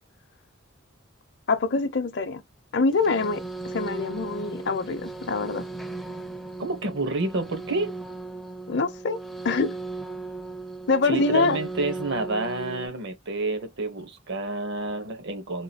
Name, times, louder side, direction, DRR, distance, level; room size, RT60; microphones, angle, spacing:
voice 1, 1.5-2.4 2.7-5.6 8.7-9.7 10.9-11.6, left 3 dB, 60° left, 0.6 m, -25 dB
sound 1, 2.9-12.9, right 3 dB, ahead, 0.4 m, -37 dB
voice 2, 6.6-7.9 11.0-15.6, right 3 dB, 60° right, 0.9 m, -29 dB
3.7 x 2.3 x 2.7 m
head